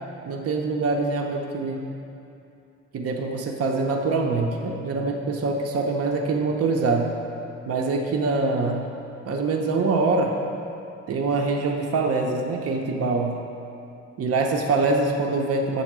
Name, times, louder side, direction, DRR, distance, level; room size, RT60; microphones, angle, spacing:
voice 1, 0.3-1.9 2.9-7.1 7.7-8.8 9.3-10.3 11.1-13.4 14.2-15.8, right 3 dB, 50° right, 2 dB, 0.8 m, -24 dB
7.3 x 4.1 x 6.1 m, 2.7 s
cardioid pair, 90°, 30 cm